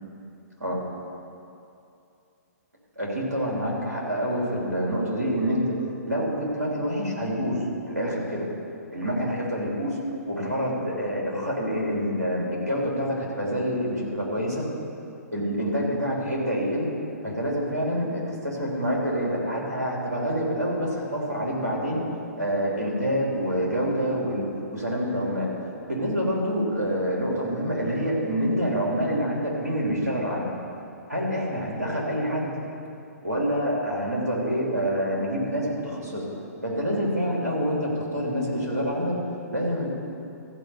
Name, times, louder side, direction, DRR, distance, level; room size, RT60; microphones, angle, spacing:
voice 1, 3.0-5.8 6.1-8.5 8.9-10.0 10.3-14.7 15.3-16.9 17.2-22.0 22.4-25.5 25.9-30.5 31.1-32.5 33.2-36.3 36.6-39.2 39.5-39.9, equal, 90° right, -3 dB, 3.1 m, -27 dB
14.5 x 5.3 x 7.2 m, 2.7 s
figure-of-eight pair, 125°, 9 cm